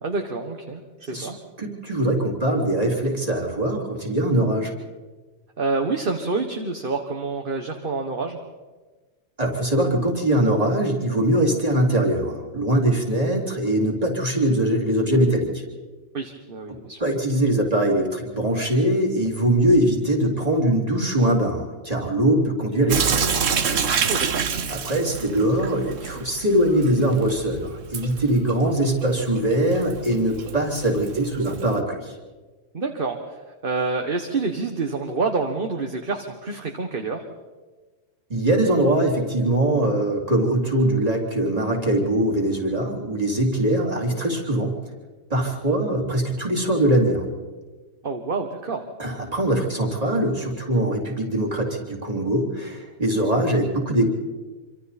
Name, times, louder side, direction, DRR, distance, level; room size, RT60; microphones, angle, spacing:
voice 1, 0.0-0.8 1.1-1.4 5.6-8.4 16.1-17.0 24.1-24.4 32.7-37.3 48.0-48.8, right 3 dB, 45° right, 4 dB, 1.6 m, -27 dB
voice 2, 1.6-4.7 9.4-15.6 16.7-23.2 24.7-32.2 38.3-44.7 45.3-47.3 49.0-54.1, right 1 dB, 30° right, -1 dB, 3.7 m, -22 dB
Sink (filling or washing) / Drip, 22.9-31.8, right 6 dB, 80° right, 1.4 m, -28 dB
26.0 x 25.5 x 4.3 m, 1.3 s
omnidirectional pair, 1.3 m